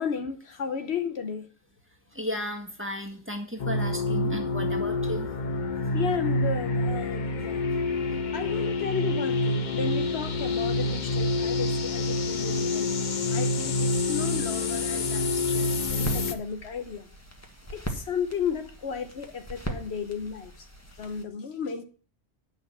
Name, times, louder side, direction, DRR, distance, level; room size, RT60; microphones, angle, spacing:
voice 1, 0.0-1.5 5.9-7.6 8.3-12.9 13.3-17.0 17.7-20.7 21.0-21.8, left 6 dB, 65° left, 1.1 m, -33 dB
voice 2, 2.1-5.3, left 1 dB, 10° right, 1.7 m, -34 dB
sound 1, 3.6-16.3, left 2 dB, 45° left, 0.9 m, -27 dB
sound 2, 15.8-21.2, right 1 dB, 15° left, 1.4 m, -39 dB
8.9 x 6.3 x 6.8 m
omnidirectional pair, 1.2 m